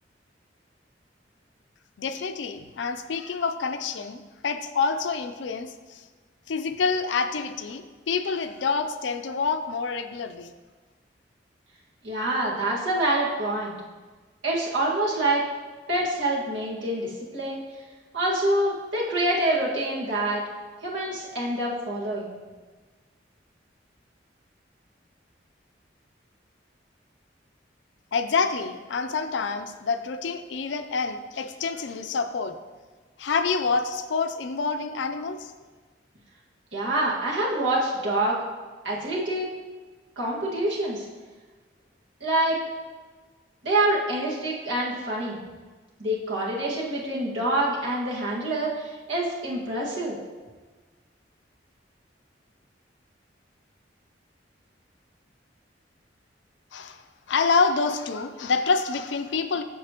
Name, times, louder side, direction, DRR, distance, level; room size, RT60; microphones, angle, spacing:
voice 1, 2.0-6.0 6.5-10.5 28.1-32.6 33.2-35.5 56.7-57.0 57.3-59.6, left 4 dB, 75° left, 9 dB, 0.5 m, -27 dB
voice 2, 12.0-13.8 14.4-15.4 15.9-17.6 18.1-20.4 20.8-22.4 36.7-38.4 38.8-39.5 40.2-41.0 42.2-42.6 43.6-45.4 46.0-50.2, right 1 dB, 85° right, -5 dB, 1.8 m, -26 dB
8.2 x 6.5 x 2.9 m, 1.4 s
head